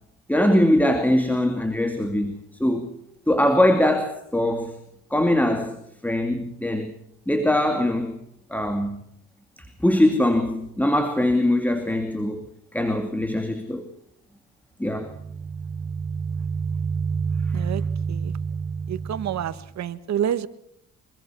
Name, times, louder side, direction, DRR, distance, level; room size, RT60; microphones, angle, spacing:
voice 1, 0.3-2.9 3.3-4.7 5.1-6.9 7.3-8.2 8.5-9.0 9.8-12.5 12.7-13.9 14.8-15.1, left 1 dB, 5° left, 7 dB, 2.5 m, -22 dB
sound 1, 15.0-19.7, right 5 dB, 20° right, 1.4 m, -28 dB
voice 2, 18.9-20.5, right 10 dB, 65° right, 13 dB, 1.5 m, -28 dB
25.0 x 23.0 x 6.2 m, 0.72 s
cardioid pair, 90°, 30 cm